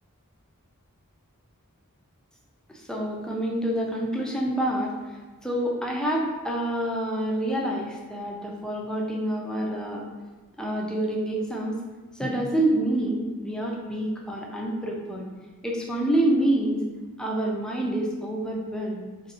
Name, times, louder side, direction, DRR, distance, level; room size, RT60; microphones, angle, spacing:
voice 1, 2.7-4.9 5.4-10.1 10.6-11.8 12.2-15.3 15.6-16.8 17.2-19.0, right 1 dB, 5° left, -2 dB, 0.5 m, -27 dB
3.4 x 2.7 x 4.1 m, 1.2 s
head